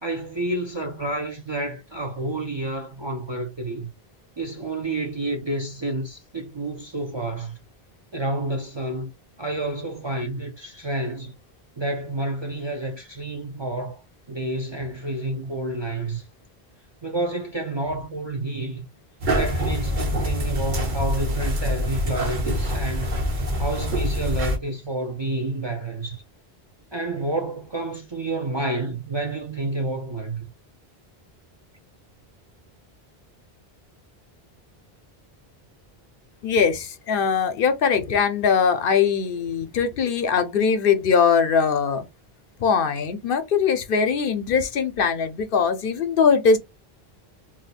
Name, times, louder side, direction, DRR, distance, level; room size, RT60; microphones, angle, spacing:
voice 1, 0.0-3.9 4.4-7.6 8.1-9.1 9.4-11.3 11.8-14.0 14.3-16.2 17.0-18.9 19.3-23.1 23.6-26.2 26.9-30.4, right 2 dB, 35° right, 0.4 m, -29 dB
sound 1, 19.2-24.6, equal, 55° right, 0.9 m, -25 dB
voice 2, 36.4-42.0 42.6-46.6, left 6 dB, 65° left, 0.7 m, -21 dB
2.7 x 2.1 x 4.0 m
omnidirectional pair, 1.0 m